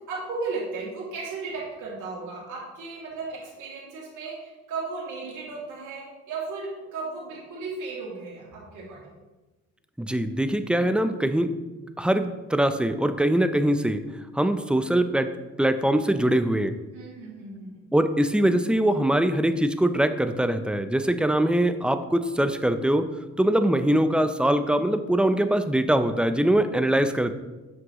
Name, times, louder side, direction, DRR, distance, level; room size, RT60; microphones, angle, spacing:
voice 1, 0.1-9.1 16.9-17.8, right 4 dB, 80° right, -6 dB, 2.4 m, -35 dB
voice 2, 10.0-11.5 12.0-14.0 14.3-15.3 15.6-16.7 17.9-23.1 23.4-27.3, right 1 dB, 5° right, 9 dB, 0.4 m, -22 dB
7.9 x 6.0 x 3.0 m, 1.2 s
cardioid pair, 90°, 30 cm